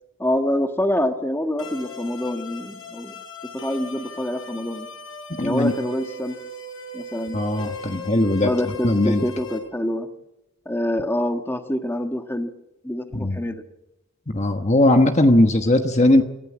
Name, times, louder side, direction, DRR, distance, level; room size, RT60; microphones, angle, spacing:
voice 1, 0.2-4.9 5.4-6.4 6.9-7.4 8.4-10.1 10.6-12.5 12.8-13.6, left 1 dB, 10° left, 6 dB, 1.5 m, -26 dB
sound 1, 1.6-9.6, left 2 dB, 60° left, 6.6 m, -38 dB
voice 2, 5.4-5.7 7.3-8.5 8.8-9.2 13.2-13.4 14.3-16.2, left 1 dB, 30° left, 6 dB, 1.2 m, -18 dB
26.5 x 15.0 x 8.6 m, 0.93 s
head